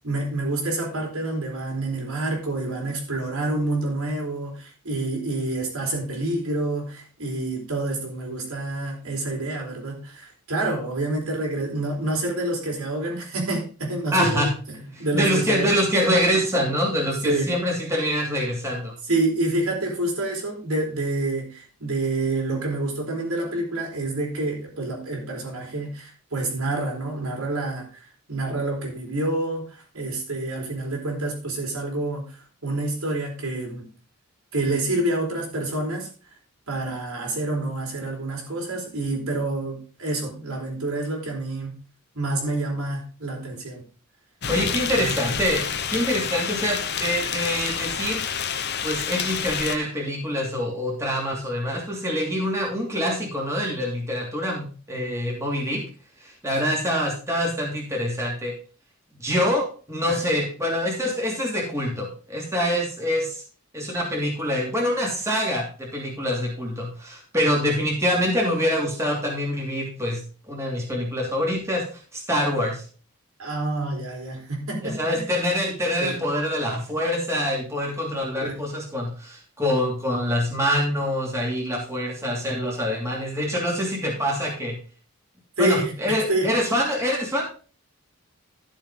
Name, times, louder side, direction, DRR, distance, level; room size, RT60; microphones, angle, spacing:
voice 1, 0.0-15.7 17.2-17.5 19.1-27.9 28.3-32.4 32.6-33.9 34.5-36.1 36.7-41.7 42.1-43.8 45.0-45.2 60.1-60.3 73.4-75.3 76.0-76.2 78.4-78.5 85.6-86.5, right 2 dB, 80° right, 0 dB, 4.1 m, -28 dB
voice 2, 14.1-14.5 14.9-18.9 44.5-45.6 45.9-48.2 48.8-55.8 56.2-58.5 59.2-63.4 63.7-72.8 74.8-84.8 85.6-87.5, equal, 15° right, -2 dB, 2.9 m, -25 dB
sound 1, 44.4-49.8, left 7 dB, 50° left, 1.0 m, -28 dB
12.0 x 7.1 x 3.8 m, 0.37 s
head